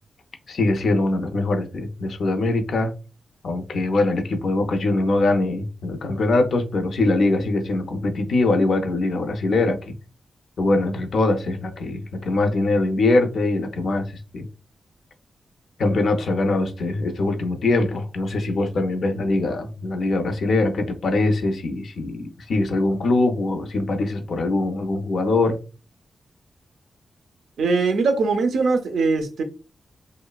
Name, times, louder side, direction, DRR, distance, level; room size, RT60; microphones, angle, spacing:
voice 1, 0.5-2.9 3.4-9.9 10.6-14.4 15.8-25.6, left 2 dB, 70° left, 0.5 m, -22 dB
voice 2, 27.6-29.4, right 4 dB, 85° right, 0.5 m, -21 dB
2.9 x 2.0 x 2.2 m
wide cardioid pair, 145°, 0 cm